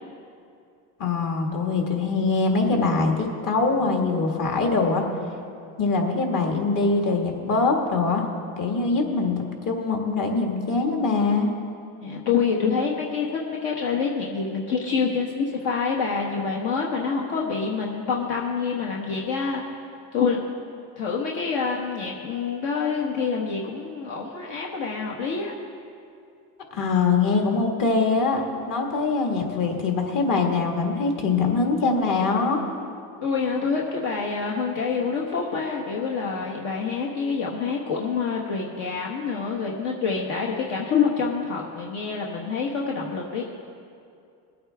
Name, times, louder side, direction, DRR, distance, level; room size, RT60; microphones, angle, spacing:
voice 1, 1.0-5.0 5.8-8.3 8.6-11.5 26.7-32.6, left 4 dB, 45° left, 2 dB, 1.9 m, -23 dB
voice 2, 12.0-19.6 20.1-20.4 21.0-25.5 33.2-43.4, left 5 dB, 60° left, -2 dB, 1.4 m, -26 dB
20.5 x 8.6 x 3.5 m, 2.4 s
cardioid pair, 125°, 46 cm